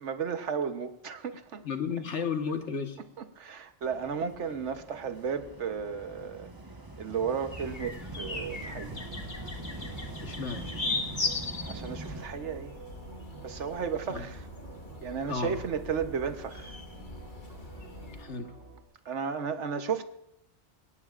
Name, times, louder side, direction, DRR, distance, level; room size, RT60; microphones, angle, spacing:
voice 1, 0.0-1.6 3.2-6.5 7.0-9.1 11.6-12.8 13.4-14.5 15.0-16.8 19.0-20.1, right 6 dB, 80° right, 1.3 m, -34 dB
voice 2, 1.6-3.0 10.2-10.6 14.1-14.3 15.3-15.6 18.2-18.5, left 5 dB, 75° left, 1.7 m, -33 dB
sound 1, 3.8-12.3, right 2 dB, 20° right, 1.1 m, -44 dB
sound 2, 7.5-18.2, left 3 dB, 45° left, 1.6 m, -39 dB
sound 3, 8.6-18.8, right 4 dB, 60° right, 1.5 m, -50 dB
21.0 x 18.0 x 2.5 m
omnidirectional pair, 1.2 m